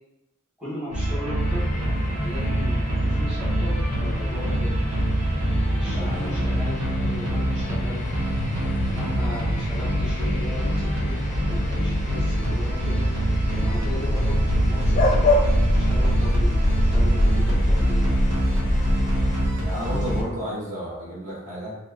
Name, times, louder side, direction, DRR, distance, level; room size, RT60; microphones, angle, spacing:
voice 1, 0.6-1.7 2.1-4.8 5.6-8.0 8.6-11.2 11.5-18.1, left 1 dB, 5° right, -12 dB, 1.2 m, -37 dB
sound 1, 0.9-20.2, right 1 dB, 85° right, 0.7 m, -26 dB
sound 2, 1.4-19.5, left 1 dB, 40° left, 0.5 m, -25 dB
voice 2, 5.9-6.3 19.6-21.7, equal, 35° right, -6 dB, 0.9 m, -32 dB
3.0 x 2.7 x 2.5 m, 0.95 s
head